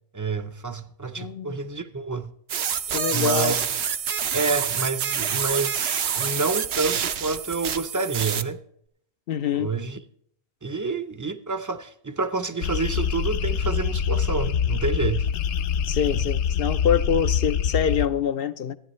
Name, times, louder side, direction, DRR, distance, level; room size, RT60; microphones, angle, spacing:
voice 1, 0.1-2.3 3.1-3.6 4.3-8.6 9.5-10.0 10.6-15.3 16.1-16.2, right 4 dB, 20° right, 0.6 m, -28 dB
voice 2, 1.2-1.6 2.9-3.5 9.3-9.7 15.9-18.8, left 8 dB, 60° left, 0.8 m, -25 dB
sound 1, 2.5-8.4, right 8 dB, 65° right, 0.9 m, -27 dB
sound 2, 12.6-18.1, left 7 dB, 90° left, 0.9 m, -25 dB
15.5 x 10.5 x 3.1 m
omnidirectional pair, 1.1 m